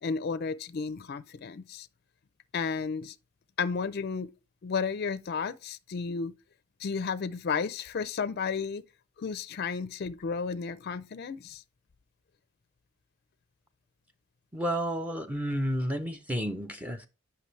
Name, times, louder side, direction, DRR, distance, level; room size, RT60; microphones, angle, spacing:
voice 1, 0.0-1.9 2.5-3.2 3.6-4.3 4.6-6.3 6.8-8.8 9.2-11.6, left 5 dB, 50° left, 0.4 m, -33 dB
voice 2, 14.5-17.1, equal, 5° right, 0.5 m, -31 dB
8.3 x 5.9 x 3.1 m
head